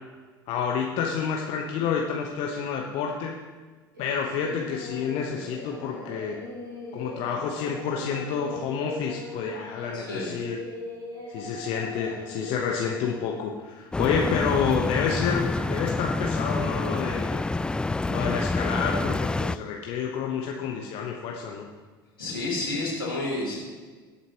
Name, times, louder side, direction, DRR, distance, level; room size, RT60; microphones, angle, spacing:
voice 1, 0.5-3.3 4.0-6.4 6.9-10.6 11.3-17.4 18.1-21.7, left 6 dB, 55° left, 0 dB, 1.2 m, -29 dB
Singing, 3.9-13.4, left 1 dB, 85° right, 4.6 m, -40 dB
voice 2, 9.9-10.4 22.2-23.5, left 2 dB, 85° left, -5 dB, 4.1 m, -30 dB
sound 1, 13.9-19.6, left 2 dB, 10° left, 0.3 m, -27 dB
21.5 x 8.7 x 3.1 m, 1.4 s
figure-of-eight pair, 65°, 12 cm